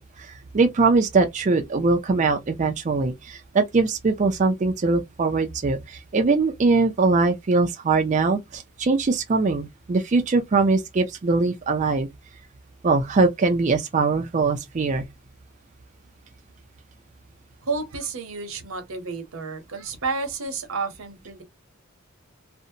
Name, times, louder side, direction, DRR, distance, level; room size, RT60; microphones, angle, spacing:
voice 1, 0.0-12.1 12.8-15.0, right 3 dB, 35° right, 0.4 m, -22 dB
voice 2, 17.6-21.4, right 4 dB, 75° right, 0.8 m, -31 dB
2.6 x 2.1 x 2.7 m
head